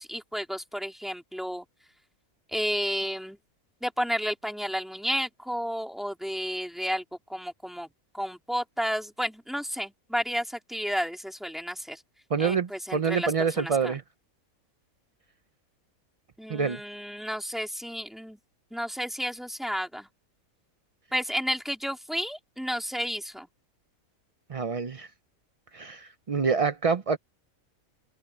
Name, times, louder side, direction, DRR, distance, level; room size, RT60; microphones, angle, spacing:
voice 1, 0.0-1.6 2.5-3.4 3.8-7.0 7.3-7.9 8.1-12.0 12.4-13.3 13.6-13.9 16.4-18.4 18.7-20.1 21.1-23.5, equal, ahead, 3.4 m, -32 dB
voice 2, 12.3-14.0 16.5-16.8 24.5-25.1 25.7-27.2, right 5 dB, 45° right, 0.4 m, -27 dB
omnidirectional pair, 1.5 m